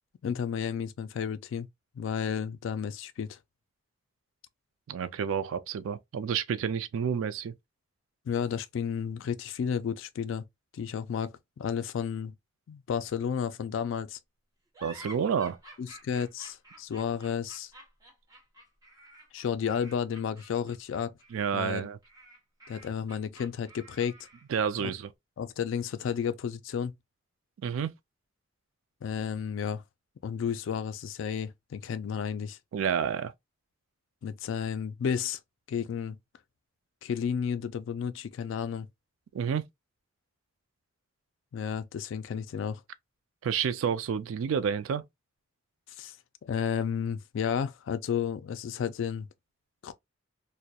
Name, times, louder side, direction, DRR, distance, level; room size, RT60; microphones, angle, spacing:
voice 1, 0.2-1.7 2.0-3.4 8.3-10.4 10.7-12.3 12.7-14.2 15.8-17.7 19.3-21.1 21.5-21.9 22.7-24.2 24.8-24.9 25.4-26.9 29.0-29.8 30.2-32.6 34.2-35.4 35.7-36.2 37.0-38.9 41.5-42.8 46.0-46.1 46.4-49.3 49.8-49.9, left 7 dB, 70° left, 0.3 m, -32 dB
voice 2, 4.9-7.5 14.8-15.6 21.3-22.0 24.5-25.1 27.6-27.9 32.7-33.3 39.3-39.6 43.4-45.0, right 7 dB, 80° right, 0.3 m, -29 dB
sound 1, 14.7-24.6, right 1 dB, 15° right, 1.1 m, -51 dB
2.2 x 2.1 x 2.6 m
head